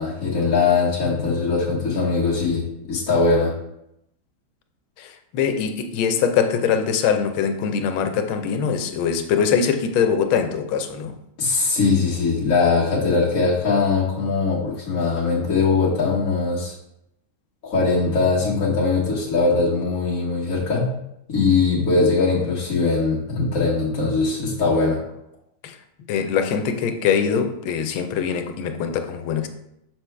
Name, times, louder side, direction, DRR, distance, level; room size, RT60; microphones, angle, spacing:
voice 1, 0.0-3.5 11.4-16.7 17.6-20.9 21.3-25.0, left 4 dB, 45° left, 1.7 m, -21 dB
voice 2, 5.0-11.2 25.6-25.8 26.1-29.5, left 7 dB, 90° left, 1.5 m, -22 dB
6.1 x 6.0 x 3.3 m
omnidirectional pair, 2.2 m